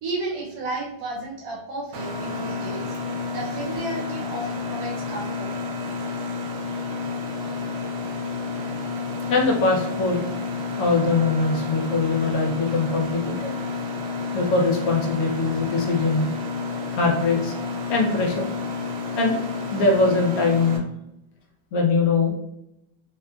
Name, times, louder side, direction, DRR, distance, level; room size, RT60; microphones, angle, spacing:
voice 1, 0.0-3.0 3.3-5.5, right 2 dB, 65° right, -2 dB, 1.0 m, -32 dB
Mechanisms, 1.9-20.8, left 4 dB, 85° right, 1.3 m, -30 dB
voice 2, 9.3-10.3 10.8-13.5 14.3-16.3 16.9-17.5 17.9-18.5 19.2-19.4 19.7-20.8 21.7-22.3, left 3 dB, 65° left, -1 dB, 0.9 m, -22 dB
2.9 x 2.5 x 2.2 m, 0.82 s
omnidirectional pair, 2.0 m